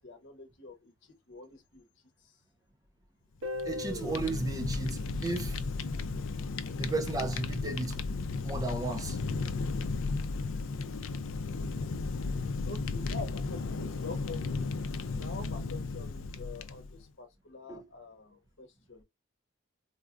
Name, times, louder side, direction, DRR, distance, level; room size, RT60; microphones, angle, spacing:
voice 1, 0.0-1.9 2.2-2.4 12.6-14.7 15.2-19.0, left 3 dB, 70° left, 0.9 m, -46 dB
Fire, 3.4-17.0, left 3 dB, 85° left, 0.4 m, -35 dB
Guitar, 3.4-6.4, left 1 dB, 90° right, 0.7 m, -41 dB
voice 2, 3.6-5.6 6.8-8.0 8.4-9.2 17.7-17.8, right 2 dB, 20° right, 0.6 m, -34 dB
4.1 x 2.4 x 2.4 m
head